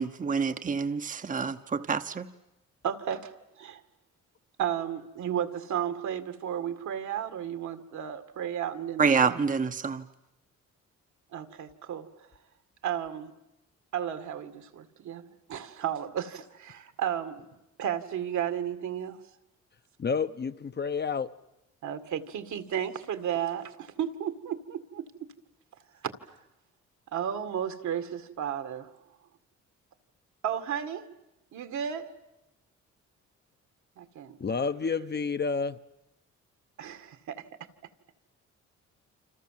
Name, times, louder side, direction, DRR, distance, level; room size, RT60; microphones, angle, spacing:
voice 1, 0.0-2.3 9.0-10.0, right 5 dB, 25° right, 10 dB, 0.9 m, -27 dB
voice 2, 2.8-3.3 3.6-3.8 4.6-9.4 11.3-12.1 12.8-13.3 13.9-15.2 15.5-17.5 17.8-19.2 21.8-25.3 26.0-26.1 27.1-28.9 30.4-31.1 31.5-32.1 34.0-34.4 36.8-37.4, right 9 dB, 70° right, 9 dB, 2.0 m, -33 dB
voice 3, 20.0-21.3 34.4-35.8, left 5 dB, 35° left, 10 dB, 0.9 m, -29 dB
28.5 x 26.0 x 7.6 m, 0.91 s
cardioid pair, 90°, 30 cm